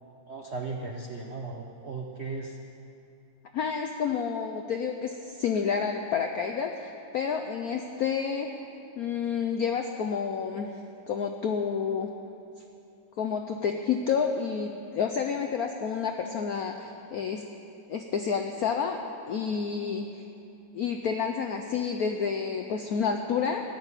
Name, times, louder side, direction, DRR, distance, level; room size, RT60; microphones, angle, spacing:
voice 1, 0.3-2.6, right 3 dB, 70° right, 0 dB, 0.6 m, -36 dB
voice 2, 3.5-8.5 9.0-10.8 11.1-12.1 13.2-17.4 17.9-20.2 20.7-23.6, left 6 dB, 80° left, 5 dB, 0.8 m, -29 dB
14.5 x 7.0 x 9.8 m, 2.7 s
omnidirectional pair, 2.4 m